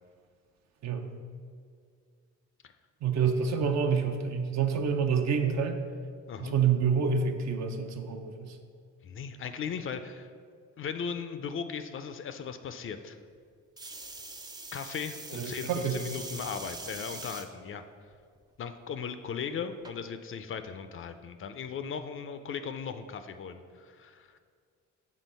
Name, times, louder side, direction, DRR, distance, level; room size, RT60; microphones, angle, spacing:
voice 1, 0.8-1.1 3.0-5.8 6.4-8.6 15.3-16.0, right 6 dB, 60° right, 5 dB, 0.7 m, -28 dB
voice 2, 9.0-10.3 10.8-13.2 14.7-17.8 18.6-24.4, left 6 dB, 45° left, 10 dB, 0.4 m, -38 dB
sound 1, 13.8-17.5 18.1-18.6 19.8-19.9, right 2 dB, 15° right, 0.5 m, -42 dB
6.3 x 3.7 x 5.4 m, 2.1 s
cardioid pair, 90°, 30 cm